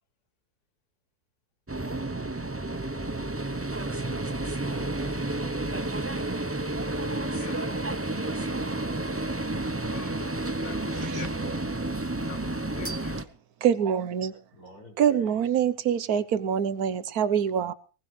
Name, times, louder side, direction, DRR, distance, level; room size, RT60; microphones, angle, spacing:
sound 1, 1.7-13.2, right 2 dB, 15° right, 0.5 m, -31 dB
voice 1, 3.7-5.7 14.5-15.4, equal, 80° left, 6.2 m, -49 dB
voice 2, 7.3-7.7 9.9-11.3 12.3-13.2, left 7 dB, 55° left, 1.3 m, -44 dB
voice 3, 13.6-14.4 15.0-17.7, right 8 dB, 75° right, 1.4 m, -25 dB
20.0 x 18.5 x 3.3 m
omnidirectional pair, 1.6 m